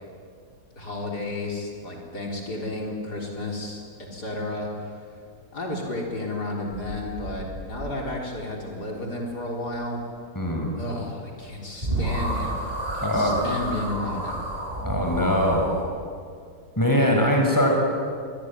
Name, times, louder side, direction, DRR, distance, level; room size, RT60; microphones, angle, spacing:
voice 1, 0.8-3.8 4.1-5.2 5.5-10.0 10.7-12.6 12.9-14.5, left 2 dB, 65° left, -1 dB, 4.5 m, -32 dB
sound 1, 6.7-8.3 11.5-11.6 11.8-15.8, right 1 dB, 20° right, 6.5 m, -31 dB
voice 2, 10.3-10.7 13.0-13.4 14.8-15.6 16.8-17.7, equal, 10° left, 0 dB, 6.1 m, -22 dB
25.5 x 22.0 x 10.0 m, 2.2 s
omnidirectional pair, 1.8 m